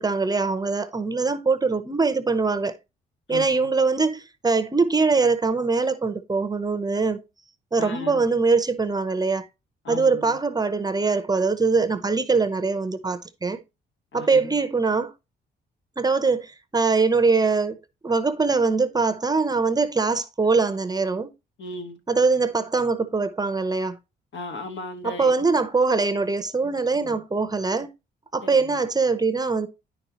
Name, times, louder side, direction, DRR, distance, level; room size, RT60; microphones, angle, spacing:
voice 1, 0.0-2.7 3.3-7.2 7.7-9.5 9.9-13.6 14.1-15.1 16.0-17.8 18.0-21.3 22.1-24.0 25.0-27.9 28.3-29.7, right 4 dB, 20° right, 0.7 m, -22 dB
voice 2, 3.3-3.7 7.8-8.3 9.8-10.4 14.1-14.5 21.6-22.0 24.3-25.3 27.0-27.2 28.7-28.8, left 2 dB, 70° left, 1.5 m, -36 dB
9.9 x 5.4 x 2.9 m
cardioid pair, 90°, 20 cm